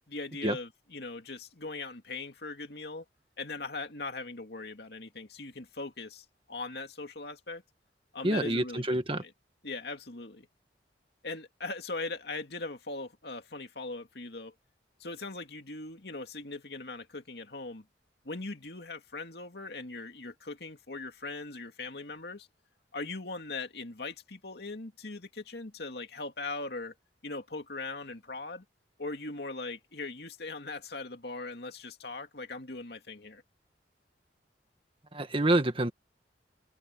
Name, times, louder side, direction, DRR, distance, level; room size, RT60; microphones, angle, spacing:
voice 1, 0.1-3.0 3.4-7.6 8.1-9.3 9.6-10.5 11.2-14.5 15.0-17.8 18.2-22.5 22.9-26.9 27.2-28.6 29.0-33.4, left 3 dB, 65° left, 2.5 m, -40 dB
voice 2, 8.2-9.2 35.1-35.9, right 1 dB, 30° right, 1.7 m, -27 dB
head